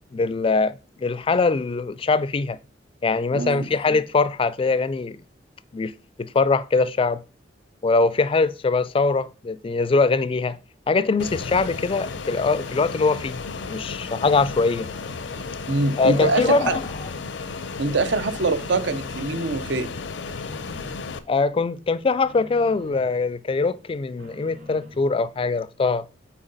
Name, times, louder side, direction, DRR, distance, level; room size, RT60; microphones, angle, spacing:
voice 1, 0.1-2.6 3.0-5.2 5.7-5.9 6.2-7.2 7.8-10.6 10.9-13.4 13.7-14.9 16.0-16.8 21.3-26.0, left 4 dB, 30° left, 0.3 m, -22 dB
voice 2, 3.3-3.7 15.7-16.8 17.8-19.9, right 3 dB, 70° right, 0.7 m, -24 dB
Fixed-wing aircraft airplane, 11.2-21.2, left 4 dB, 75° left, 0.6 m, -34 dB
sound 1, 18.2-19.2 19.6-21.2 21.5-23.1 23.5-25.1, left 2 dB, 50° right, 2.4 m, -48 dB
8.9 x 3.8 x 4.0 m
head